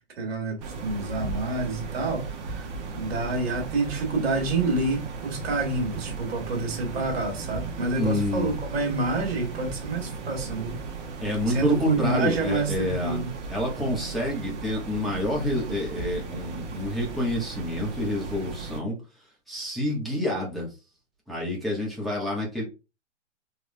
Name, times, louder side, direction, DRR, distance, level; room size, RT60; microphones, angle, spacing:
voice 1, 0.2-10.8 11.5-13.3, right 3 dB, 55° right, 1.7 m, -28 dB
sound 1, 0.6-18.8, right 4 dB, 35° right, 1.3 m, -36 dB
voice 2, 8.0-8.6 11.2-13.2 13.5-19.0 19.5-20.7 21.3-22.6, left 1 dB, ahead, 1.3 m, -28 dB
4.7 x 3.4 x 2.3 m
figure-of-eight pair, 120°, 36 cm